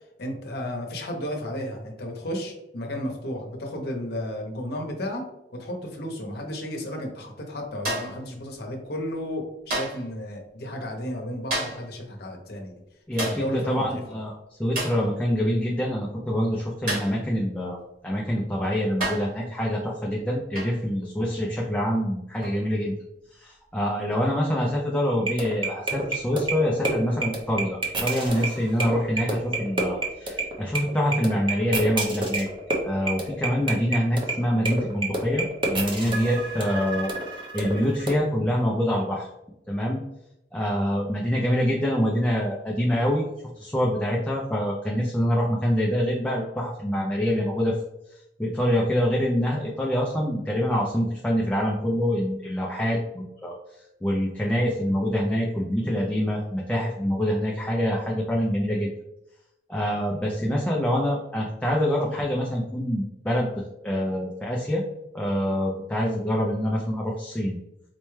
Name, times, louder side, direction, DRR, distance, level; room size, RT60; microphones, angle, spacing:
voice 1, 0.2-5.2 5.5-12.7 13.2-14.0, equal, 60° left, 1 dB, 0.8 m, -33 dB
sound 1, 7.9-8.3 9.7-10.1 11.5-11.9 13.2-13.5 14.8-15.1 16.9-17.2 18.3-18.4 19.0-19.4 20.6-20.8 22.4-22.6, right 1 dB, 55° right, 1.3 m, -30 dB
voice 2, 13.1-17.8 18.0-23.0 23.3-32.5 32.8-39.3 39.7-40.0 40.5-43.3 43.5-47.8 48.4-53.5 54.0-58.9 59.7-64.8 65.1-67.6, equal, 5° left, -2 dB, 0.3 m, -25 dB
sound 2, 25.0-38.1, right 2 dB, 30° right, 0.7 m, -28 dB
4.1 x 2.2 x 3.1 m, 0.87 s
head